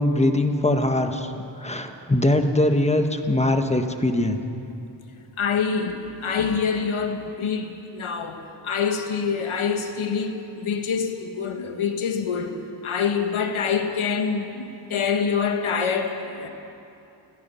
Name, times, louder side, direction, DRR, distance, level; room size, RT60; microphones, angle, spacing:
voice 1, 0.0-1.3 1.6-4.4, left 1 dB, 15° left, 1.3 m, -21 dB
voice 2, 5.4-12.5 12.8-14.6 14.9-16.5, left 6 dB, 90° left, 1.7 m, -26 dB
29.0 x 16.0 x 5.7 m
wide cardioid pair, 115°, 47 cm